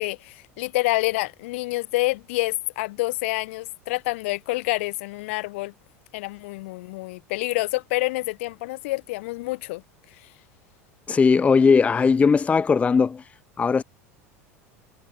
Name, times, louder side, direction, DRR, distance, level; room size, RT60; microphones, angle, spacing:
voice 1, 0.0-5.7 6.1-9.8, left 21 dB, 60° left, 1.9 m, -27 dB
voice 2, 11.1-13.2 13.6-13.8, left 5 dB, 15° left, 0.4 m, -18 dB
figure-of-eight pair, 75°, 8 cm